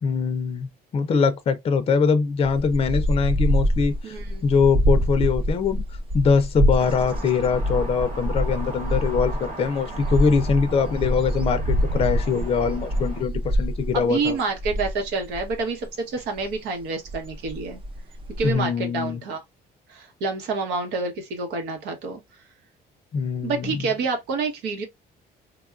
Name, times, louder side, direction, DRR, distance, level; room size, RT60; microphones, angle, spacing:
voice 1, 0.0-4.1 4.4-5.8 6.1-14.4 18.4-19.2 23.1-23.9, left 5 dB, 35° left, 0.5 m, -23 dB
sound 1, 2.4-15.8 16.4-16.5 16.8-18.5, equal, 30° right, 0.5 m, -26 dB
voice 2, 4.0-4.4 13.9-17.8 18.4-19.4 19.9-22.2 23.4-24.8, right 4 dB, 85° right, 1.1 m, -28 dB
sound 2, 6.8-13.2, right 2 dB, 50° right, 1.1 m, -38 dB
3.4 x 2.3 x 2.4 m
cardioid pair, 110°, 17 cm